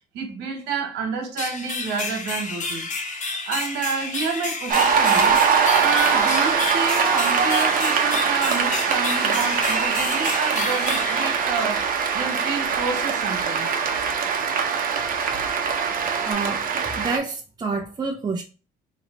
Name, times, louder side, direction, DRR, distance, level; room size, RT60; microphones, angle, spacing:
voice 1, 0.1-2.9 3.2-5.4 5.8-11.9 12.1-13.7, right 5 dB, 85° right, 1.2 m, -29 dB
sound 1, 1.4-12.1, left 3 dB, 50° left, 1.1 m, -30 dB
sound 2, 3.2-16.3, right 5 dB, 65° left, 1.4 m, -42 dB
Cheering / Applause, 4.7-17.2, right 6 dB, 55° right, 0.8 m, -22 dB
voice 2, 16.2-18.4, right 4 dB, 25° right, 0.6 m, -28 dB
3.0 x 2.8 x 4.0 m
cardioid pair, 110°, 17 cm